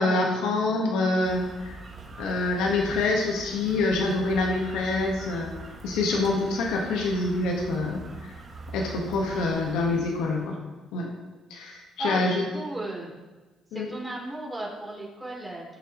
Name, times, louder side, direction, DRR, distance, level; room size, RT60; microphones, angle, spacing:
voice 1, 0.0-1.8 2.2-5.5 5.8-8.3 8.7-10.6 10.9-11.1 11.5-12.5 13.7-13.9, left 2 dB, 90° left, 0 dB, 1.6 m, -26 dB
sound 1, 1.2-10.5, right 2 dB, 40° right, 2.0 m, -43 dB
voice 2, 12.0-13.1 13.7-15.6, right 2 dB, 10° right, -4 dB, 3.6 m, -35 dB
18.0 x 6.8 x 3.2 m, 1.2 s
cardioid pair, 90°, 0 cm